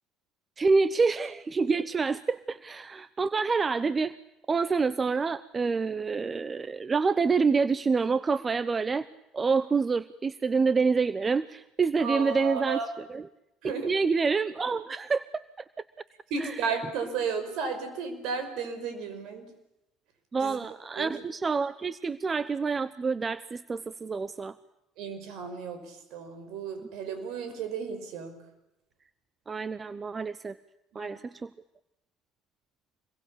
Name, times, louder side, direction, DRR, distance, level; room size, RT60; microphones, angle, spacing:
voice 1, 0.6-4.1 4.5-9.1 9.3-13.2 13.8-15.3 15.6-15.7 16.4-16.6 20.3-24.5 29.5-30.6 30.9-31.5, right 4 dB, 30° right, 16 dB, 0.9 m, -27 dB
voice 2, 12.0-12.9 13.6-13.9 16.3-19.5 20.4-20.6 21.0-21.1 25.0-28.4 30.9-31.2, right 5 dB, 65° right, 8 dB, 5.6 m, -34 dB
27.0 x 22.0 x 8.6 m, 0.90 s
hypercardioid pair, 60°, 0 cm